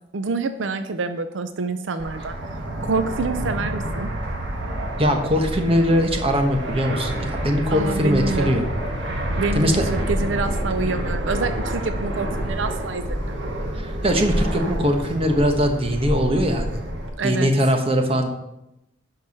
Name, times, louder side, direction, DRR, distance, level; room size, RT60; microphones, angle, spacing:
voice 1, 0.1-2.4 2.8-4.1 7.7-8.6 9.4-13.5 17.2-17.5, right 3 dB, 80° right, 9 dB, 0.6 m, -27 dB
Fixed-wing aircraft airplane, 2.0-17.1, right 1 dB, 65° right, 1.7 m, -28 dB
voice 2, 5.0-8.7 9.5-9.9 13.7-16.8 17.2-18.3, equal, 30° right, 4 dB, 1.1 m, -21 dB
11.0 x 4.7 x 5.9 m, 0.90 s
head